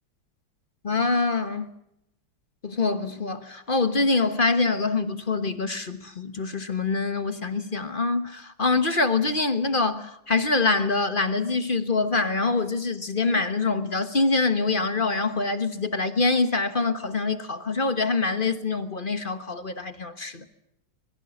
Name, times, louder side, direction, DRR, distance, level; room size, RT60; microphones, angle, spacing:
voice 1, 0.8-1.7 2.6-20.4, left 3 dB, 30° left, 1.2 m, -25 dB
25.5 x 22.5 x 7.2 m
omnidirectional pair, 2.1 m